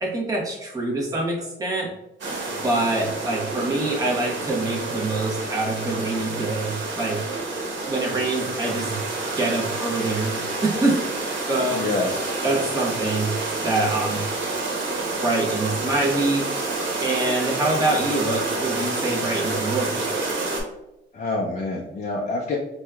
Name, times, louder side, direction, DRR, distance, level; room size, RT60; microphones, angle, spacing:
voice 1, 0.0-1.9 2.6-7.2 7.9-9.0 9.4-11.0 11.5-11.9 12.4-13.3 13.6-14.2 15.2-16.5 17.0-20.0, right 2 dB, 15° right, -3 dB, 0.8 m, -25 dB
sound 1, 2.2-20.6, right 3 dB, 70° right, 1.0 m, -28 dB
voice 2, 11.7-12.3 21.1-22.6, left 2 dB, 40° left, -1 dB, 0.5 m, -27 dB
4.4 x 2.2 x 2.3 m, 0.92 s
cardioid pair, 90°, 20 cm